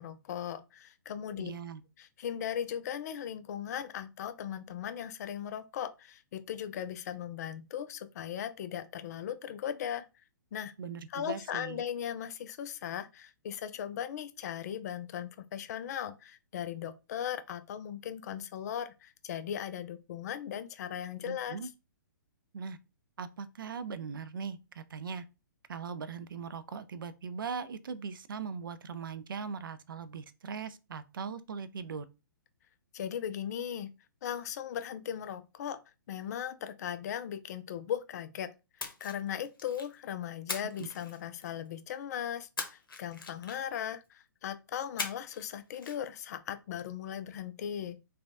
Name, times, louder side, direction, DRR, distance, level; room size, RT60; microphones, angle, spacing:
voice 1, 0.0-1.5 2.0-10.1 10.5-10.7 11.1-21.6 32.9-33.9 34.2-35.8 36.1-38.5 39.0-48.0, left 9 dB, 50° left, 0.4 m, -38 dB
voice 2, 1.4-1.8 10.8-11.8 21.2-21.7 22.5-22.8 23.2-25.2 25.7-32.1 40.8-40.9, right 6 dB, 75° right, 0.4 m, -40 dB
Splash splatter, 38.8-40.0 40.5-41.7 42.6-43.8 45.0-45.5 45.7-46.0, left 4 dB, 85° left, 0.9 m, -40 dB
3.2 x 2.2 x 2.6 m
hypercardioid pair, 130°, 11 cm